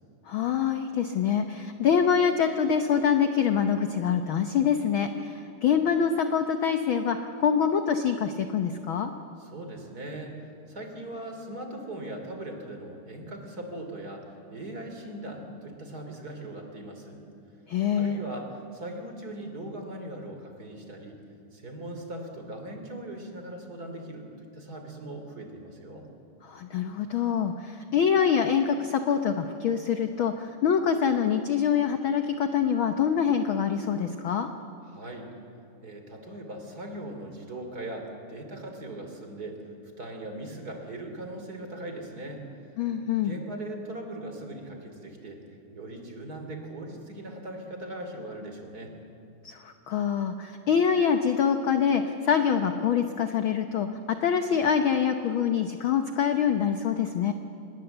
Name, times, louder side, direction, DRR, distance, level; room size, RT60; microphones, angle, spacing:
voice 1, 0.3-9.1 17.7-18.2 26.4-34.5 42.8-43.4 49.4-57.3, left 7 dB, 75° left, 7 dB, 1.2 m, -25 dB
voice 2, 9.4-17.2 17.9-21.2 21.5-26.1 34.9-35.3 35.8-39.7 40.0-42.5 43.2-45.4 45.7-48.9, right 1 dB, 30° right, 4 dB, 3.2 m, -39 dB
27.0 x 21.0 x 8.0 m, 2.6 s
omnidirectional pair, 3.6 m